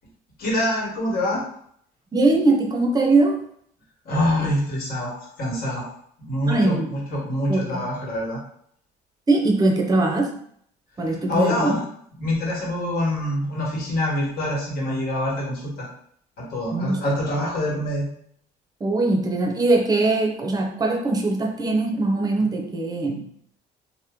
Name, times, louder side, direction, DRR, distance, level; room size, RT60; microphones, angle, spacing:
voice 1, 0.4-1.4 4.0-5.9 6.3-8.4 11.0-11.8 12.2-15.9 16.5-18.1, left 1 dB, 60° left, -3 dB, 1.4 m, -25 dB
voice 2, 2.1-3.4 4.4-4.5 6.5-6.9 7.5-7.8 9.3-10.4 11.0-11.8 16.7-17.0 18.8-23.3, right 2 dB, 20° right, 2 dB, 0.7 m, -21 dB
3.0 x 2.2 x 3.6 m, 0.65 s
cardioid pair, 110°, 17 cm